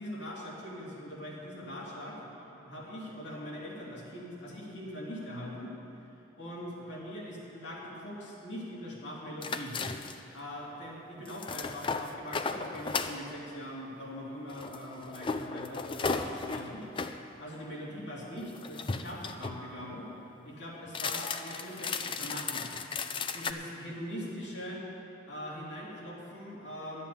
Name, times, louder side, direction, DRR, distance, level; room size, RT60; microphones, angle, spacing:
voice 1, 0.0-2.2 2.7-5.7 6.4-9.7 10.3-16.8 17.4-20.1 20.4-22.7 23.3-24.8 25.3-27.1, equal, 70° left, -5 dB, 2.9 m, -42 dB
sound 1, 9.4-10.3 11.3-13.2 14.5-17.2 18.4-19.6 20.9-23.5, left 4 dB, 25° left, 0.4 m, -35 dB
11.5 x 7.4 x 8.6 m, 2.8 s
head